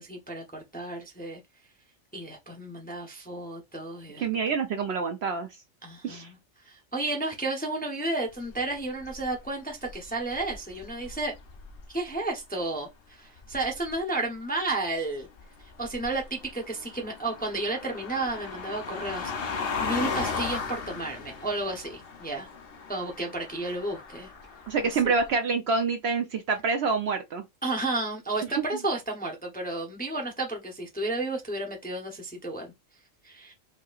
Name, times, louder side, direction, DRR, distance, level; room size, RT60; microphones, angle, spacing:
voice 1, 0.0-1.4 2.1-4.5 5.8-6.4 6.6-11.3 11.9-15.3 15.6-22.5 22.9-24.3 24.8-25.1 27.6-32.7 33.2-33.5, right 2 dB, 10° left, 0.6 m, -32 dB
voice 2, 4.2-5.5 6.0-6.3 24.7-27.4 28.6-28.7, right 5 dB, 65° right, 0.7 m, -27 dB
sound 1, 8.3-9.5 9.8-12.0 13.4-14.0 15.2-25.3, left 5 dB, 55° left, 0.8 m, -37 dB
4.7 x 2.7 x 2.4 m
omnidirectional pair, 1.4 m